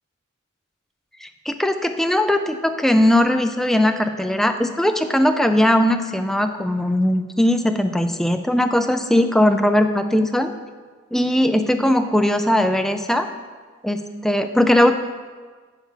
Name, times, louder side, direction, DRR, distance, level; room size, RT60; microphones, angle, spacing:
voice 1, 1.2-10.5 11.1-13.3 13.8-14.9, left 1 dB, ahead, 7 dB, 0.4 m, -19 dB
8.2 x 6.8 x 4.6 m, 1.5 s
head